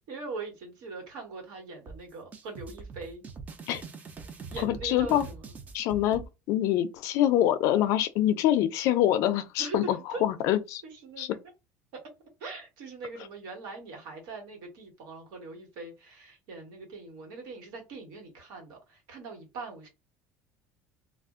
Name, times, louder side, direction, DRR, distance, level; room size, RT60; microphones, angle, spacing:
voice 1, 0.1-3.2 4.5-5.5 9.6-10.2 10.8-11.3 11.9-12.0 12.4-19.9, right 3 dB, 70° right, 1.4 m, -41 dB
sound 1, 1.9-6.3, right 4 dB, 25° right, 0.4 m, -43 dB
voice 2, 4.6-5.3 5.7-10.8 11.2-11.4, left 12 dB, 60° left, 0.5 m, -25 dB
2.4 x 2.1 x 3.6 m
cardioid pair, 160°, 6 cm